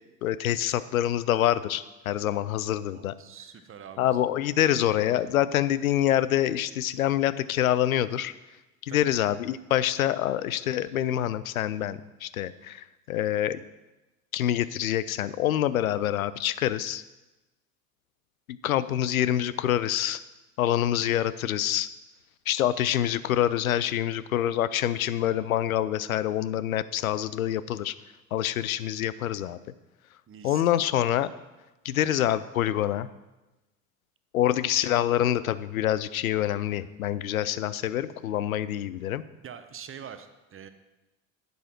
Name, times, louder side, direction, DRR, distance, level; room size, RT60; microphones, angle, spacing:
voice 1, 0.2-3.1 4.0-8.3 8.8-13.6 14.3-17.0 18.5-20.2 20.6-21.9 22.5-27.9 28.3-29.6 30.4-31.3 31.8-33.1 34.3-39.2, left 12 dB, 80° left, 16 dB, 0.5 m, -26 dB
voice 2, 2.9-4.2 8.9-9.3 22.6-22.8 30.3-30.7 39.4-40.7, right 8 dB, 30° right, 10 dB, 1.0 m, -45 dB
11.0 x 8.1 x 4.4 m, 1.1 s
figure-of-eight pair, 60°, 41 cm